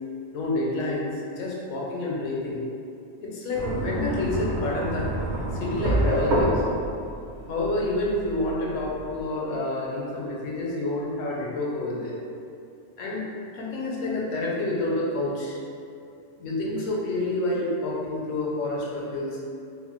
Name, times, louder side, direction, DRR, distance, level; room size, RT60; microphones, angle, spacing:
voice 1, 0.3-2.6 3.2-5.1 5.5-6.6 7.5-12.2 13.0-13.3 13.5-15.6 16.4-19.4, left 2 dB, 80° left, -4 dB, 1.0 m, -28 dB
sound 1, 3.5-9.2, right 1 dB, 65° right, 0.4 m, -28 dB
3.0 x 2.0 x 3.0 m, 2.5 s
omnidirectional pair, 1.3 m